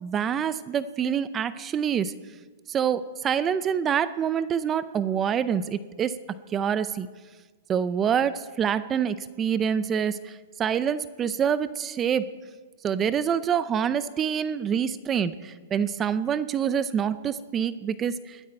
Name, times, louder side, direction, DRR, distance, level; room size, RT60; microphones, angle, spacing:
voice 1, 0.0-2.1 2.7-6.2 6.5-7.1 7.7-12.3 12.8-18.4, right 8 dB, 20° right, 15 dB, 0.5 m, -26 dB
21.0 x 12.5 x 4.4 m, 1.4 s
hypercardioid pair, 155°, 0 cm